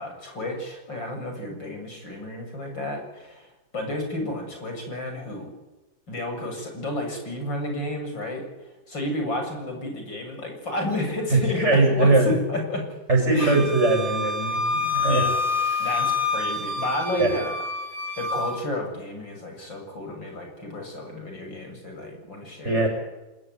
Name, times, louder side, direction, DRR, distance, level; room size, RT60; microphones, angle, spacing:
voice 1, 0.0-5.5 6.1-8.5 8.9-12.9 13.3-13.7 15.1-15.4 15.8-17.6 18.2-22.9, left 1 dB, 65° left, 3 dB, 8.1 m, -31 dB
voice 2, 11.6-12.3 13.1-15.2 17.2-17.3 22.6-22.9, right 2 dB, 30° right, 3 dB, 7.3 m, -20 dB
Wind instrument woodwind instrument, 13.4-18.6, left 4 dB, 70° right, 4.2 m, -27 dB
27.5 x 20.0 x 9.5 m, 1.0 s
omnidirectional pair, 2.2 m